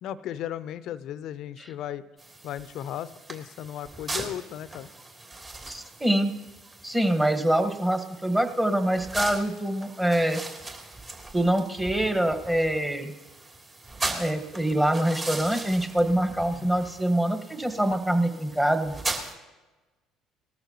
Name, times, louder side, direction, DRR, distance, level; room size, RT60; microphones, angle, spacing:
voice 1, 0.0-2.0 2.4-4.9 16.5-16.7, left 11 dB, 65° left, 16 dB, 0.6 m, -36 dB
sound 1, 2.2-19.3, right 2 dB, 35° right, 2.9 m, -39 dB
voice 2, 5.7-6.3 6.8-10.4 11.3-13.1 14.1-18.9, right 1 dB, 10° right, 6 dB, 1.5 m, -25 dB
19.5 x 14.0 x 2.9 m, 1.2 s
hypercardioid pair, 60°, 0 cm